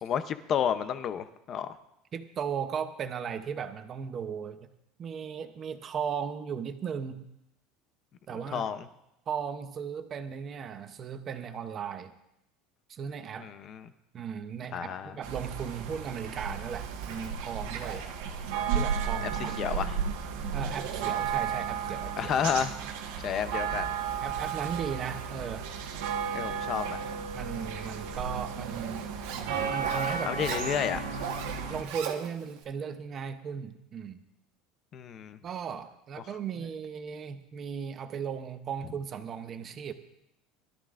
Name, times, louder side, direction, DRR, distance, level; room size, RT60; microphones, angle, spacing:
voice 1, 0.0-1.8 8.5-8.8 13.4-13.8 14.7-15.2 19.6-19.9 22.2-22.7 23.2-23.9 26.3-27.0 30.2-31.0 34.9-35.4, left 8 dB, 30° left, 11 dB, 0.6 m, -31 dB
voice 2, 2.1-4.7 5.0-7.3 8.3-8.7 9.3-12.1 12.9-13.5 14.1-18.0 18.7-19.5 20.5-22.3 24.2-25.7 27.3-29.1 29.7-31.2 31.7-34.2 35.4-39.9, right 7 dB, 25° right, 9 dB, 0.7 m, -36 dB
sound 1, 15.2-31.8, right 6 dB, 85° right, 1.4 m, -34 dB
Zipper (clothing), 16.5-32.6, right 8 dB, 70° right, 1.3 m, -44 dB
21.0 x 13.0 x 2.5 m, 0.84 s
cardioid pair, 170°, 0 cm